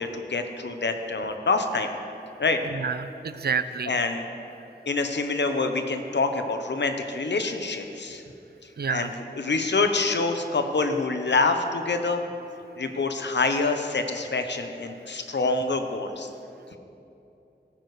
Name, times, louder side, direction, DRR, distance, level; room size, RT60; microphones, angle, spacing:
voice 1, 0.0-1.9 2.4-2.6 3.9-4.3 4.9-8.2 8.9-12.2 12.8-16.3 16.7-16.8, left 3 dB, 80° left, 6 dB, 0.8 m, -26 dB
voice 2, 2.8-3.9 8.8-9.1, right 6 dB, 65° right, 13 dB, 0.4 m, -28 dB
17.0 x 9.6 x 3.2 m, 2.8 s
wide cardioid pair, 70°, 18 cm